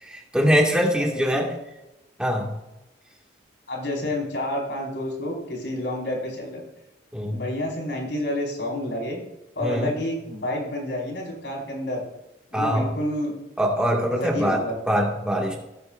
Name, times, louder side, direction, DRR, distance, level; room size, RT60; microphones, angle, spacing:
voice 1, 0.0-1.5 2.2-2.5 7.1-7.4 9.6-9.9 12.5-12.9 13.6-14.6 14.9-15.6, equal, 5° right, -1 dB, 2.0 m, -23 dB
voice 2, 3.7-6.6 7.3-9.2 9.5-12.0 12.5-13.3 14.1-14.7, left 1 dB, 90° left, -2 dB, 5.1 m, -29 dB
16.5 x 13.5 x 2.6 m, 0.94 s
head